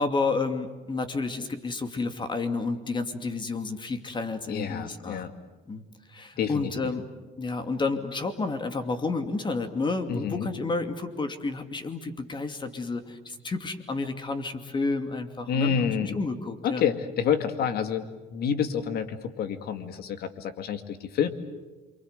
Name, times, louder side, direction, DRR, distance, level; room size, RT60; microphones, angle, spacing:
voice 1, 0.0-5.3 5.7-5.8 6.1-7.1 7.4-16.8, left 3 dB, 25° left, 8 dB, 2.6 m, -30 dB
voice 2, 4.5-5.3 6.4-6.7 10.1-10.5 15.5-16.2 16.6-21.3, left 7 dB, 65° left, 9 dB, 2.3 m, -28 dB
28.5 x 24.0 x 8.2 m, 1.2 s
cardioid pair, 110°, 17 cm